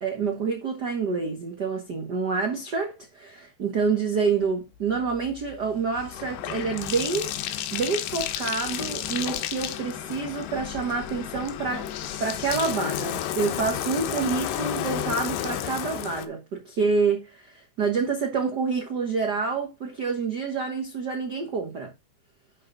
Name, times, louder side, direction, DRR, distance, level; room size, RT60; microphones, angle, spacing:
voice 1, 0.0-7.3 7.7-11.9 12.2-21.9, right 5 dB, 75° right, 0.9 m, -27 dB
Bathtub (filling or washing), 4.9-16.3, left 11 dB, 80° left, 2.5 m, -32 dB
10.5 x 4.6 x 3.8 m
omnidirectional pair, 4.0 m